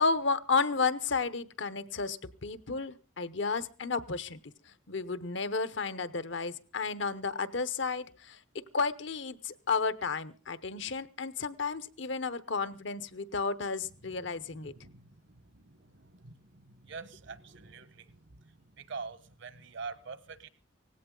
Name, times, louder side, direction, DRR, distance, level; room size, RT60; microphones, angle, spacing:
voice 1, 0.0-4.4 4.9-14.7, left 4 dB, 65° left, 0.9 m, -32 dB
voice 2, 16.9-17.9 18.9-20.5, right 4 dB, 65° right, 1.2 m, -43 dB
18.5 x 16.5 x 3.8 m
head